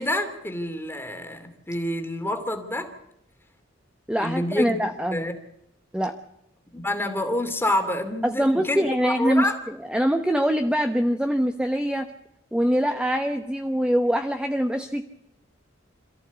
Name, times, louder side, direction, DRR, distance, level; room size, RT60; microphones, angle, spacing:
voice 1, 0.0-2.9 4.2-4.8 5.1-5.3 6.7-9.5, left 1 dB, 10° left, 6 dB, 2.7 m, -27 dB
voice 2, 4.1-5.2 5.9-6.1 8.2-9.5 9.9-12.1 12.5-15.0, equal, 5° right, 6 dB, 1.0 m, -23 dB
26.5 x 14.5 x 8.2 m, 0.80 s
head